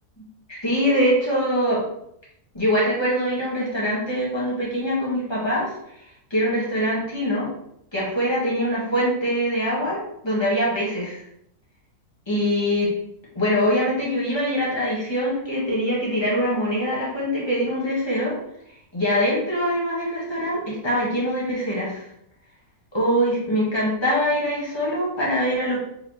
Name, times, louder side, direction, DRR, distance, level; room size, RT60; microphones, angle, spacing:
voice 1, 0.5-1.8 2.5-5.7 6.3-7.5 7.9-11.2 12.3-12.9 13.3-18.3 18.9-22.1 22.9-25.8, equal, 20° left, -6 dB, 1.6 m, -23 dB
4.1 x 3.7 x 3.1 m, 0.76 s
omnidirectional pair, 1.6 m